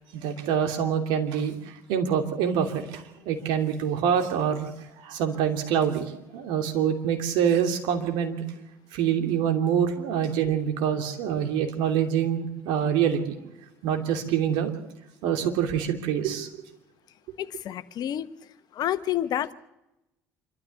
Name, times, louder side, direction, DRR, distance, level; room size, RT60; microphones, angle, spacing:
voice 1, 0.1-1.5 1.9-4.7 5.0-6.1 6.3-8.4 8.9-13.2 13.8-14.7 15.2-16.5, right 8 dB, 70° right, 5 dB, 2.9 m, -25 dB
voice 2, 17.4-18.3 18.7-19.5, left 11 dB, 55° left, 13 dB, 1.1 m, -29 dB
26.5 x 13.0 x 8.4 m, 0.92 s
hypercardioid pair, 60°, 8 cm